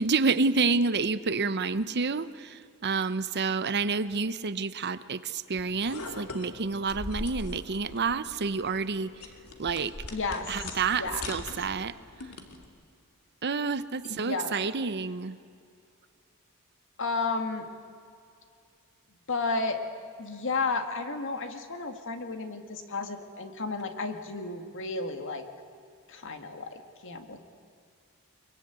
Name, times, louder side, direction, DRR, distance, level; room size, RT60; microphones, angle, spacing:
voice 1, 0.0-9.2 9.6-10.0 10.5-12.0 13.4-15.4, right 4 dB, 50° right, 14 dB, 0.8 m, -29 dB
sound 1, 5.6-12.7, left 2 dB, 90° left, 2.6 m, -42 dB
voice 2, 10.0-11.3 14.0-14.5 17.0-17.7 19.3-19.8 20.2-25.4 26.1-27.4, left 3 dB, 60° left, 7 dB, 2.1 m, -33 dB
23.0 x 23.0 x 9.4 m, 2.3 s
head